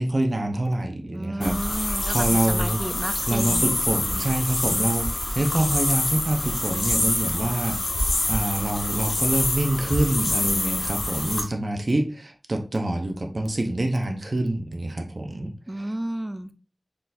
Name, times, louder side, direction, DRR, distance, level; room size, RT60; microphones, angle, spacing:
voice 1, 0.0-2.8 3.3-15.9, right 1 dB, 60° right, 3 dB, 0.7 m, -26 dB
voice 2, 1.1-3.7 15.7-16.5, right 1 dB, 25° right, 10 dB, 0.4 m, -32 dB
sound 1, 1.4-11.4, left 1 dB, 80° left, 1.0 m, -26 dB
4.5 x 3.8 x 2.5 m, 0.35 s
wide cardioid pair, 55°, 0 cm